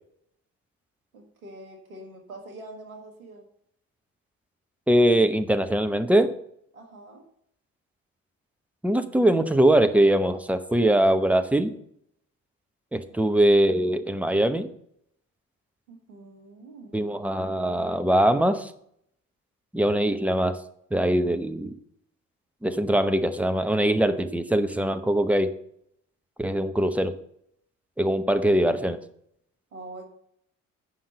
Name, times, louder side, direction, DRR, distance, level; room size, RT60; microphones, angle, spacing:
voice 1, 1.1-3.4 6.7-7.2 13.1-13.3 15.9-17.0 29.7-30.1, right 2 dB, 85° right, 2 dB, 1.3 m, -44 dB
voice 2, 4.9-6.3 8.8-11.7 12.9-14.7 16.9-18.7 19.7-20.6 20.9-21.7 22.6-25.5 26.4-27.1 28.0-29.0, right 1 dB, 5° right, 9 dB, 0.9 m, -22 dB
8.7 x 5.6 x 6.6 m, 0.71 s
figure-of-eight pair, 50°, 41 cm